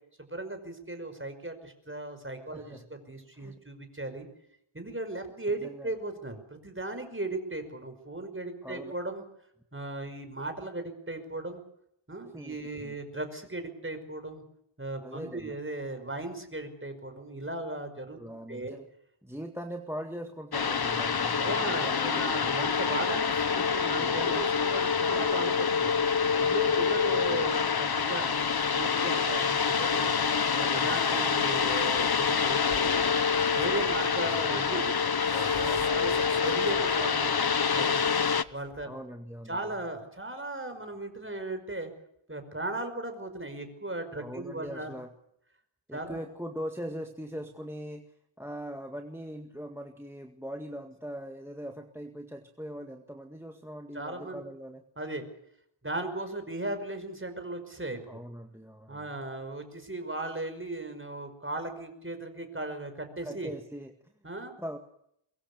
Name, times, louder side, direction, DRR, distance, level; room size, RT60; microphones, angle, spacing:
voice 1, 0.2-4.3 4.7-9.2 9.7-11.6 12.1-14.4 14.8-18.2 18.5-18.8 21.4-25.9 26.4-28.3 28.7-30.2 30.5-33.2 33.5-34.9 35.6-36.1 36.4-37.4 37.7-38.0 38.5-38.9 39.5-41.9 42.3-44.9 45.9-46.2 53.9-54.4 55.0-55.2 55.8-58.2 58.9-63.5 64.2-64.5, right 2 dB, 25° right, 7 dB, 5.4 m, -37 dB
voice 2, 2.5-2.8 3.3-3.6 5.6-5.9 8.6-8.9 12.3-12.9 15.0-15.6 18.2-18.9 19.2-22.6 23.9-24.4 26.8-27.5 30.7-30.9 38.8-39.6 44.2-45.1 45.9-54.8 58.1-59.1 63.2-63.9 64.6-64.8, equal, 5° right, 5 dB, 2.0 m, -41 dB
sound 1, 20.5-38.4, left 6 dB, 50° left, 0.9 m, -26 dB
sound 2, 32.7-38.9, left 5 dB, 65° left, 1.8 m, -42 dB
23.0 x 23.0 x 6.9 m, 0.74 s
wide cardioid pair, 75°, 50 cm